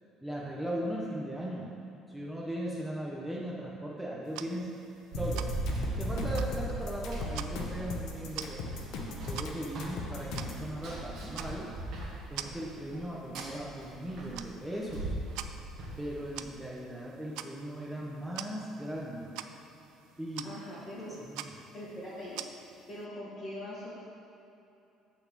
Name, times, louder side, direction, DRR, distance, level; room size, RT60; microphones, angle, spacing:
voice 1, 0.2-1.8 2.1-4.8 5.2-5.5 6.0-8.6 9.2-11.7 12.3-15.1 16.0-19.3 20.2-20.5 21.2-21.5, equal, 5° right, -5 dB, 0.8 m, -38 dB
sound 1, 4.2-23.0, right 10 dB, 80° right, 0.3 m, -47 dB
sound 2, 5.1-10.7, left 4 dB, 60° left, 1.0 m, -39 dB
Run, 5.1-16.5, right 2 dB, 45° right, 1.5 m, -38 dB
voice 2, 20.4-21.2 21.7-22.4 22.9-23.9, left 1 dB, 25° left, -8 dB, 1.6 m, -42 dB
8.6 x 4.1 x 6.7 m, 2.8 s
cardioid pair, 180°, 0 cm